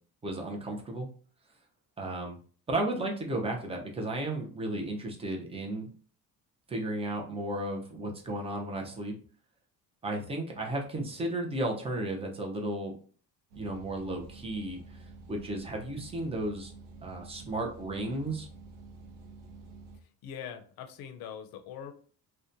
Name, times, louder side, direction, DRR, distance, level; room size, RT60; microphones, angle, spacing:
voice 1, 0.2-1.1 2.0-2.4 2.7-5.9 6.7-9.2 10.0-12.9 13.6-16.7 17.0-18.5, right 1 dB, 15° right, 1 dB, 0.5 m, -34 dB
sound 1, 13.5-20.0, right 3 dB, 60° right, 0.7 m, -49 dB
voice 2, 20.2-21.9, left 8 dB, 80° left, 7 dB, 0.6 m, -42 dB
2.8 x 2.1 x 2.5 m, 0.42 s
cardioid pair, 140°, 36 cm